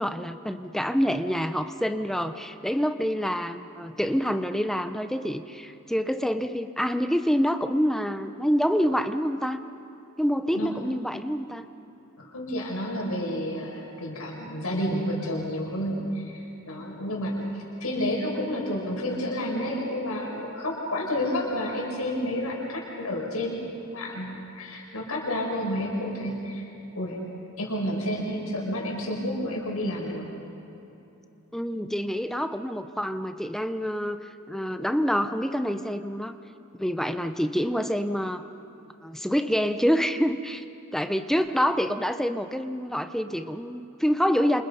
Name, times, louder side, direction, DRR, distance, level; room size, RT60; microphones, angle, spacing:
voice 1, 0.0-9.6 10.2-11.7 31.5-34.2 34.5-36.4 36.7-38.4 39.0-40.6 40.9-44.6, equal, ahead, 8 dB, 0.8 m, -27 dB
voice 2, 12.3-26.7 26.9-27.2 27.6-30.2, equal, 90° left, -2 dB, 6.2 m, -30 dB
29.0 x 27.5 x 5.4 m, 2.9 s
head